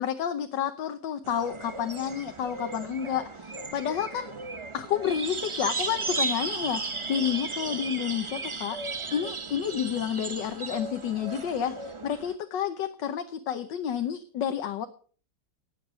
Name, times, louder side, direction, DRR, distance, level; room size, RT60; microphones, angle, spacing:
voice 1, 0.0-4.3 4.7-6.8 7.1-8.8 9.1-14.9, left 9 dB, 85° left, 8 dB, 1.6 m, -30 dB
sound 1, 1.2-12.3, right 3 dB, 30° right, 0.5 m, -35 dB
19.0 x 7.2 x 6.3 m, 0.43 s
omnidirectional pair, 1.9 m